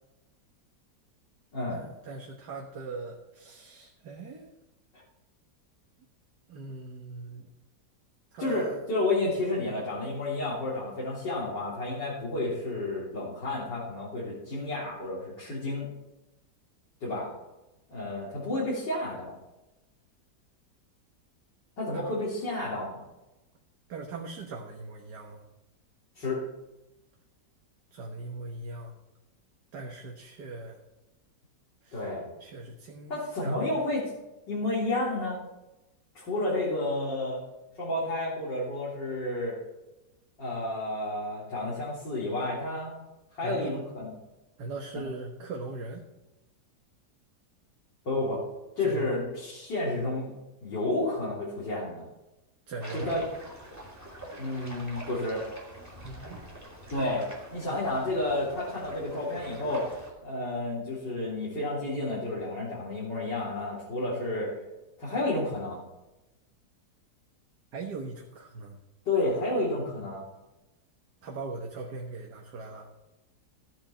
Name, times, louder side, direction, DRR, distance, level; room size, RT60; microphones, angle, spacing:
voice 1, 1.7-4.5 6.5-7.5 8.3-8.8 21.9-22.2 23.9-25.4 27.9-28.9 29.7-30.8 31.8-32.1 32.4-33.6 43.4-43.8 44.6-46.0 48.8-49.1 52.7-53.2 56.0-56.4 57.7-58.0 67.7-68.8 71.2-72.9, right 3 dB, 70° right, 0 dB, 1.8 m, -40 dB
voice 2, 8.4-15.9 17.0-17.3 17.9-19.3 21.8-23.0 26.2-26.4 31.9-32.2 33.1-34.0 34.5-35.4 36.1-37.4 37.8-39.5 40.4-43.0 43.3-44.1 48.1-48.4 48.8-50.3 50.6-52.0 52.9-53.2 54.4-55.4 56.9-57.2 57.5-59.9 60.2-64.5 65.0-65.8 69.1-70.2, left 2 dB, 90° left, -8 dB, 4.0 m, -31 dB
sound 1, 52.8-60.1, right 1 dB, 10° right, 2.9 m, -45 dB
15.5 x 8.8 x 4.4 m, 1.0 s
omnidirectional pair, 1.9 m